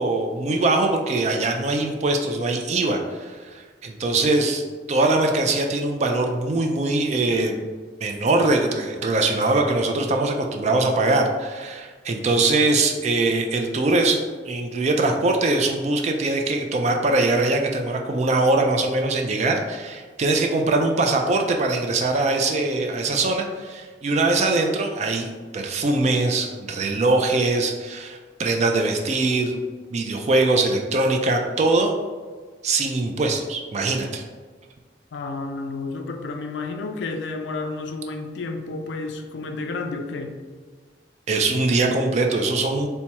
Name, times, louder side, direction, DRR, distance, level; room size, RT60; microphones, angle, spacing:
voice 1, 0.0-4.6 4.9-7.7 8.0-25.3 25.5-29.6 29.9-31.9 32.6-34.2 41.3-42.9, right 2 dB, 40° right, 3 dB, 0.3 m, -22 dB
voice 2, 35.1-40.3, left 3 dB, 75° left, 5 dB, 0.4 m, -31 dB
4.3 x 2.2 x 2.8 m, 1.4 s
head